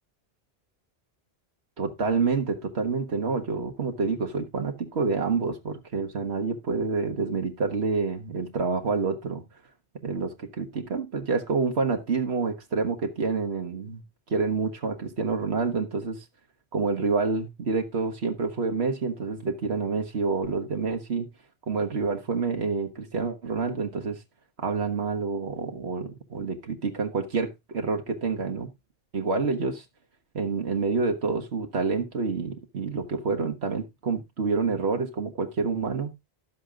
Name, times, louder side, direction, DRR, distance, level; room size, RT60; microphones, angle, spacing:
voice 1, 1.8-9.4 10.0-14.0 14.3-16.2 16.7-21.3 21.7-24.2 24.6-28.7 29.1-29.8 30.3-36.1, right 4 dB, 90° right, 1.8 m, -28 dB
12.0 x 7.4 x 3.7 m
omnidirectional pair, 1.1 m